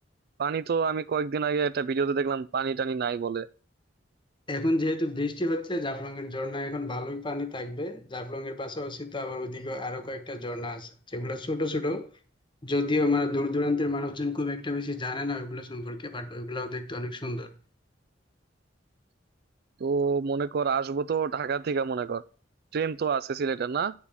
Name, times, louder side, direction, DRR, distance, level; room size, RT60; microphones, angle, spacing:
voice 1, 0.4-3.5 19.8-22.2 22.7-23.9, right 5 dB, 55° right, 0.4 m, -28 dB
voice 2, 4.5-12.1 12.6-17.5, left 2 dB, 25° left, 1.2 m, -30 dB
9.7 x 4.2 x 7.0 m
head